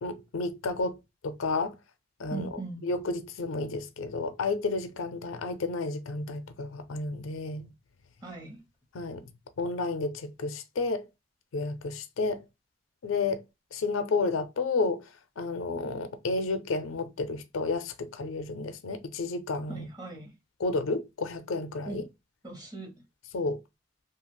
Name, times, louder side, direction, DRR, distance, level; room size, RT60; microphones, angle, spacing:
voice 1, 0.0-1.7 2.2-2.5 2.8-7.7 8.9-9.3 9.6-11.0 11.5-12.4 13.0-13.4 13.7-15.1 15.4-19.9 20.6-22.0 23.3-23.6, left 3 dB, 90° left, 0.5 m, -31 dB
voice 2, 2.3-2.9 8.2-8.6 19.7-20.3 21.9-22.0 22.4-22.9, right 3 dB, 20° right, 0.9 m, -39 dB
2.7 x 2.4 x 3.0 m
head